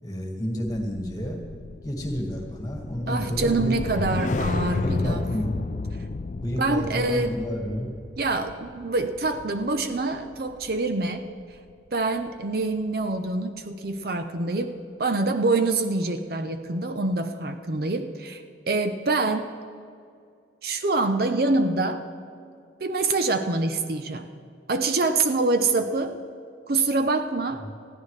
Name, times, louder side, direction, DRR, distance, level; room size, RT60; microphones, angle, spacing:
voice 1, 0.0-1.4 1.8-4.0 4.3-4.5 4.8-5.6 6.4-7.9 27.6-27.7, equal, 20° left, 1 dB, 1.8 m, -30 dB
sound 1, 0.6-11.1 11.4-11.7, left 3 dB, 40° left, 0.4 m, -32 dB
voice 2, 3.1-5.2 6.6-7.3 8.2-11.3 11.9-19.5 20.6-22.0 22.8-24.3 24.7-26.2 26.7-27.7, right 3 dB, 55° right, 8 dB, 0.6 m, -25 dB
20.5 x 14.5 x 3.3 m, 2.3 s
head